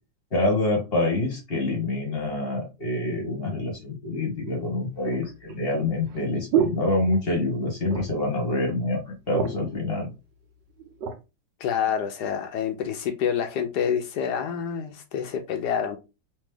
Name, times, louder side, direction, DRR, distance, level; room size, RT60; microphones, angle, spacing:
voice 1, 0.3-10.1, left 2 dB, 35° left, 1.3 m, -26 dB
sound 1, 3.5-3.6 4.4-7.5 7.8-8.3 8.7-8.8 9.1-9.8 10.5-11.2 11.8-12.0, right 8 dB, 75° right, 1.4 m, -30 dB
voice 2, 11.6-16.0, left 8 dB, 70° left, 1.1 m, -27 dB
3.3 x 3.1 x 3.4 m
omnidirectional pair, 2.0 m